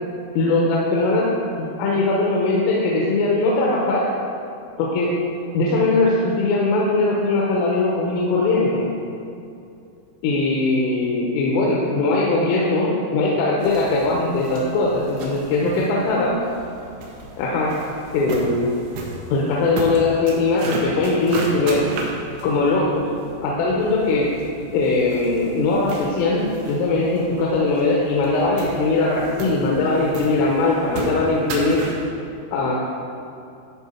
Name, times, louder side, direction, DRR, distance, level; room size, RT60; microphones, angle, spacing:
voice 1, 0.4-1.3 1.6-4.1 4.8-5.1 5.5-8.9 10.2-16.4 17.4-17.8 18.1-18.7 19.3-21.9 22.4-23.1 23.4-24.3 24.7-26.4 26.7-31.8 32.5-32.8, left 3 dB, 85° left, -3 dB, 3.4 m, -20 dB
sound 1, 13.6-32.1, right 3 dB, 90° right, 3.7 m, -35 dB
13.0 x 5.2 x 4.3 m, 2.6 s
omnidirectional pair, 5.7 m